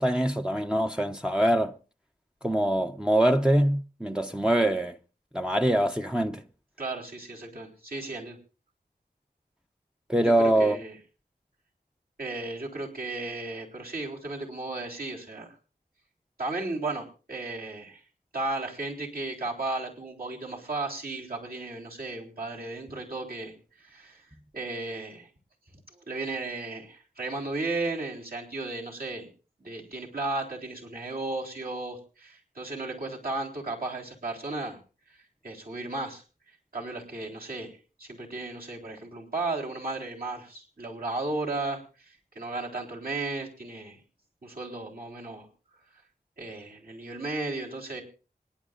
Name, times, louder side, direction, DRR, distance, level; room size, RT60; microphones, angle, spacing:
voice 1, 0.0-1.7 2.4-5.0 5.3-6.4 10.1-10.8, right 1 dB, 5° right, 0.7 m, -24 dB
voice 2, 6.8-8.4 10.2-10.9 12.2-15.5 16.4-18.0 18.3-24.2 24.5-25.3 26.1-29.3 29.6-34.8 35.1-35.2 35.4-36.2 36.7-37.7 38.0-44.0 44.4-45.5 46.4-48.0, right 2 dB, 60° right, 3.8 m, -34 dB
26.5 x 11.0 x 2.5 m
cardioid pair, 40°, 17 cm